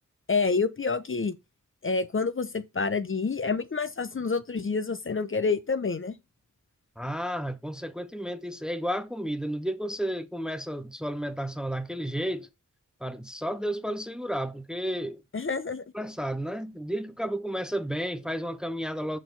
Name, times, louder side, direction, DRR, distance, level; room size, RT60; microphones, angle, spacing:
voice 1, 0.3-1.4 1.8-6.1 15.3-15.8, left 4 dB, 40° left, 0.7 m, -28 dB
voice 2, 7.0-12.5 13.0-15.2 15.9-19.2, equal, ahead, 0.8 m, -32 dB
6.3 x 4.2 x 5.2 m
cardioid pair, 45°, 31 cm